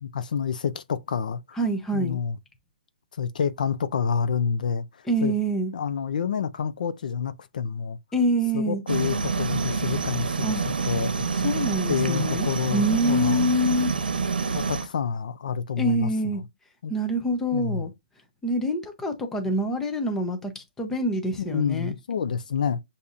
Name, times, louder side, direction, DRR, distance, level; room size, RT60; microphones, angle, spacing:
voice 1, 0.0-1.4 1.9-2.4 3.2-5.3 5.7-8.0 8.5-10.5 10.9-11.1 11.9-13.5 14.5-16.4 16.8-16.9 17.5-17.9 21.4-22.8, left 6 dB, 60° left, 0.5 m, -28 dB
voice 2, 1.5-2.2 5.1-5.7 8.1-8.8 10.4-10.6 11.3-13.9 15.8-16.4 16.9-17.9 18.4-21.9, right 1 dB, 5° left, 0.6 m, -26 dB
sound 1, 8.9-14.9, right 5 dB, 90° right, 0.7 m, -27 dB
6.9 x 2.7 x 2.4 m
hypercardioid pair, 165°, 5 cm